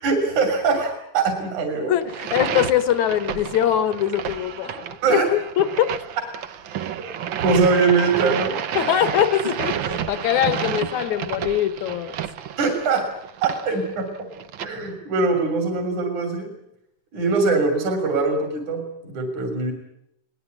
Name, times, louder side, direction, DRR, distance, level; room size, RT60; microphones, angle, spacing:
voice 1, 0.0-1.9 5.0-5.2 7.4-8.5 12.6-13.1 13.4-14.1 14.6-16.5 17.1-19.7, right 4 dB, 65° right, 5 dB, 4.5 m, -22 dB
voice 2, 1.8-6.0 8.8-12.2, left 11 dB, 70° left, 12 dB, 2.4 m, -22 dB
sound 1, 2.0-14.7, right 9 dB, 85° right, 1.0 m, -30 dB
22.0 x 19.5 x 9.5 m, 0.80 s
omnidirectional pair, 3.6 m